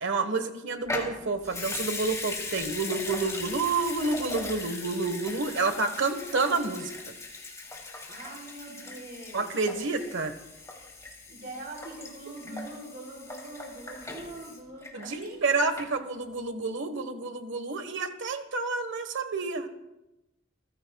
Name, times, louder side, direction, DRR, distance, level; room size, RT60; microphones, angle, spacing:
voice 1, 0.0-6.9 9.3-10.3 12.5-12.6 14.9-19.7, right 3 dB, 65° right, 8 dB, 1.4 m, -29 dB
Water tap faucet / Sink (filling or washing) / Liquid, 0.8-15.5 15.8-15.9, left 3 dB, 15° left, 3.1 m, -39 dB
voice 2, 8.1-9.5 11.3-15.4, right 2 dB, 50° right, -2 dB, 3.7 m, -43 dB
29.0 x 15.5 x 2.4 m, 0.96 s
head